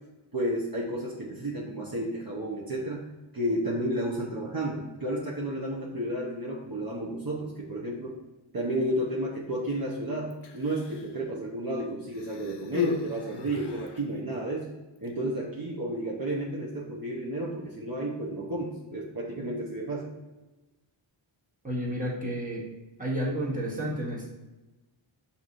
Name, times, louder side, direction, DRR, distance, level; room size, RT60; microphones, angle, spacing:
voice 1, 0.3-3.1 3.3-8.2 8.5-14.7 15.0-20.1, right 1 dB, 45° right, -4 dB, 0.8 m, -32 dB
Human voice, 10.3-11.2 12.1-14.0 15.0-15.1, left 7 dB, 55° left, 0.6 m, -35 dB
voice 2, 21.6-22.7 23.0-24.3, equal, 15° right, -4 dB, 1.2 m, -31 dB
5.9 x 2.8 x 2.5 m, 1.1 s
cardioid pair, 45°, 50 cm